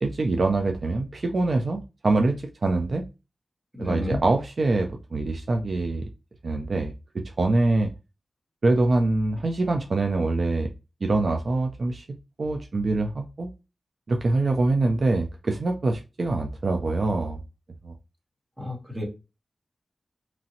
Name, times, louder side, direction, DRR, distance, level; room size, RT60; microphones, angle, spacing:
voice 1, 0.0-3.0 3.8-6.0 6.4-7.9 8.6-10.7 11.0-13.5 14.1-17.4 17.8-17.9, right 2 dB, 50° right, 4 dB, 0.3 m, -24 dB
voice 2, 3.8-4.2 18.6-19.0, left 2 dB, 10° right, -1 dB, 1.1 m, -31 dB
2.9 x 2.5 x 2.7 m, 0.28 s
wide cardioid pair, 130°, 0 cm